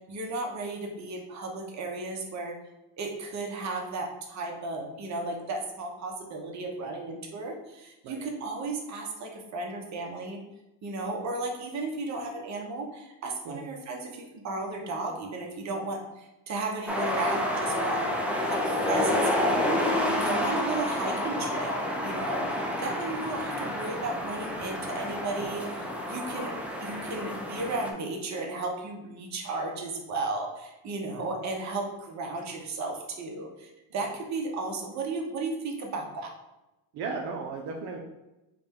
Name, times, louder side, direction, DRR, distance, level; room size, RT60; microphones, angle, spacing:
voice 1, 0.1-2.6 3.0-10.4 10.8-18.0 18.5-26.5 26.8-36.3, right 3 dB, 40° right, 1 dB, 1.0 m, -34 dB
sound 1, 16.9-27.9, left 1 dB, 5° right, 0.4 m, -29 dB
voice 2, 36.9-38.0, right 4 dB, 65° right, 0 dB, 0.7 m, -36 dB
4.8 x 2.3 x 3.6 m, 0.99 s
cardioid pair, 115°, 43 cm